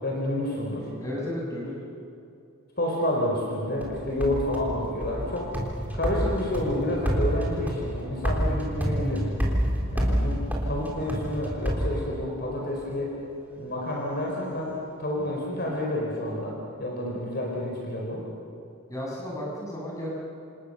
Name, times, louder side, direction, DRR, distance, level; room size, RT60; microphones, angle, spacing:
voice 1, 0.0-0.9 2.8-5.5 5.9-9.3 9.9-10.4 10.6-13.2 13.6-18.2, left 1 dB, 45° left, -2 dB, 4.9 m, -29 dB
voice 2, 1.0-1.7 18.9-20.1, equal, 15° left, -4 dB, 7.3 m, -33 dB
sound 1, 3.8-12.6, equal, 5° right, 3.6 m, -29 dB
29.0 x 27.5 x 6.9 m, 2.6 s
head